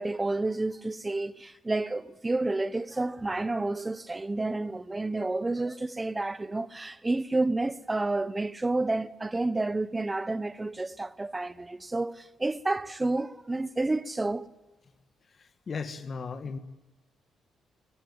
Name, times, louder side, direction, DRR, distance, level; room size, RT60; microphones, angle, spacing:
voice 1, 0.0-14.5, right 2 dB, 20° right, 1.0 m, -30 dB
voice 2, 15.7-16.6, left 5 dB, 40° left, 1.8 m, -35 dB
23.5 x 18.5 x 9.4 m
cardioid pair, 90°, 0 cm